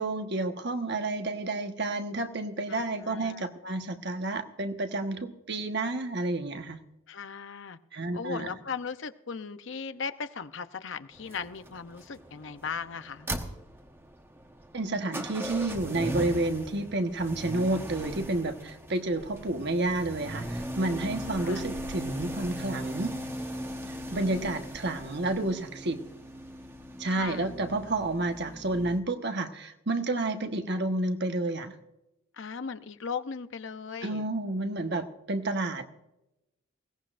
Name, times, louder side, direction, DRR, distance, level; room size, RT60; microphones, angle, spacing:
voice 1, 0.0-6.8 7.9-8.5 14.7-23.2 23.9-26.0 27.0-31.7 34.0-35.9, right 2 dB, 55° right, 6 dB, 1.2 m, -30 dB
voice 2, 2.7-3.5 7.1-7.8 8.1-13.3 21.4-21.6 24.1-24.6 27.0-27.5 32.3-34.2, left 5 dB, 60° left, 11 dB, 0.7 m, -38 dB
sound 1, 11.1-29.0, right 1 dB, 10° right, 1.1 m, -39 dB
20.5 x 17.0 x 2.5 m, 0.92 s
head